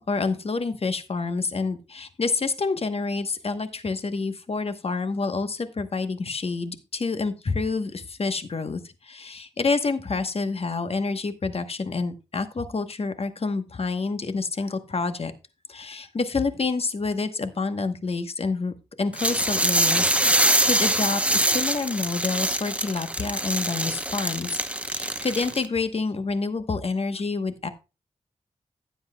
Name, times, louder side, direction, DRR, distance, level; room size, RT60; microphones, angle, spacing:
voice 1, 0.1-15.3 15.7-27.7, left 4 dB, 55° left, 9 dB, 1.1 m, -28 dB
sound 1, 19.2-25.7, right 1 dB, 10° right, 0.8 m, -24 dB
15.0 x 7.9 x 2.3 m, 0.29 s
wide cardioid pair, 80°, 12 cm